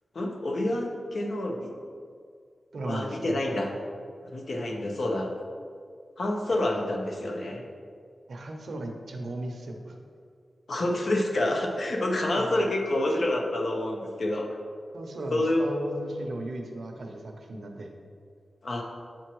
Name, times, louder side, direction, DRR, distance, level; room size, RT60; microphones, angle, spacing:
voice 1, 0.1-1.7 2.8-3.7 4.3-5.3 6.2-7.6 10.7-14.5 15.3-15.6 18.6-18.8, left 1 dB, 60° left, 1 dB, 0.7 m, -28 dB
voice 2, 2.7-3.6 8.3-10.0 12.4-12.7 14.9-17.9, right 1 dB, 75° right, 2 dB, 0.7 m, -36 dB
7.0 x 4.5 x 3.1 m, 2.2 s
wide cardioid pair, 125°, 0 cm